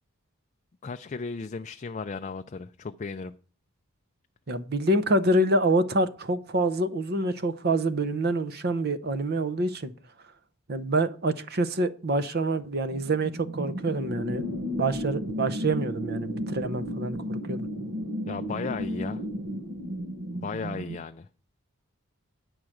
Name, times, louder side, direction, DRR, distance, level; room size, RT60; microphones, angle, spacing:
voice 1, 0.8-3.3 18.3-19.2 20.3-21.3, left 4 dB, 35° left, 0.3 m, -35 dB
voice 2, 4.5-9.9 10.7-14.4 14.8-17.7, right 2 dB, 45° right, 0.7 m, -26 dB
sound 1, 13.0-21.0, equal, 80° right, 1.4 m, -33 dB
9.9 x 4.7 x 7.7 m
head